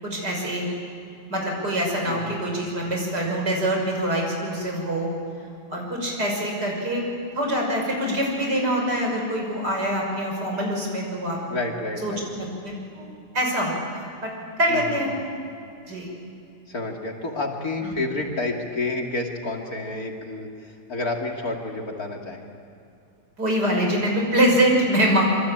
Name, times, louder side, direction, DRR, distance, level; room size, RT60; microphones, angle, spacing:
voice 1, 0.0-0.7 1.3-5.2 5.7-11.4 12.0-13.1 13.3-14.3 14.6-15.1 15.9-16.1 17.8-18.0 23.4-25.2, equal, 65° right, 0 dB, 6.8 m, -24 dB
voice 2, 11.5-12.3 14.7-15.2 16.7-22.5, left 2 dB, 55° left, 1 dB, 3.2 m, -30 dB
26.5 x 24.5 x 8.9 m, 2.6 s
omnidirectional pair, 1.9 m